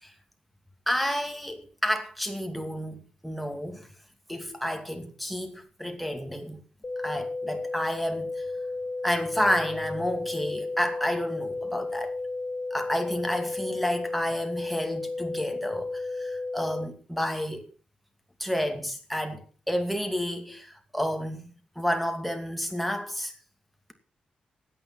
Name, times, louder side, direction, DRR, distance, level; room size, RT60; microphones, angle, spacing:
voice 1, 0.9-3.9 4.3-6.6 7.0-8.5 9.0-12.1 12.7-17.6 18.4-21.4 21.8-23.3, equal, ahead, 2.5 m, -30 dB
sound 1, 6.8-16.8, left 3 dB, 35° left, 1.5 m, -33 dB
16.5 x 9.0 x 5.9 m
cardioid pair, 105°, 3 cm